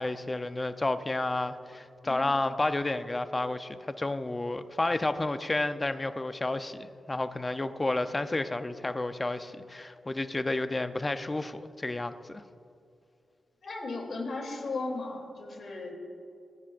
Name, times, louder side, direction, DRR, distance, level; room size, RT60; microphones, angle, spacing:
voice 1, 0.0-12.4, left 2 dB, 25° left, 10 dB, 0.7 m, -31 dB
voice 2, 13.6-15.9, left 3 dB, 65° left, 0 dB, 3.1 m, -36 dB
27.0 x 10.5 x 2.6 m, 2.6 s
cardioid pair, 60°, 0 cm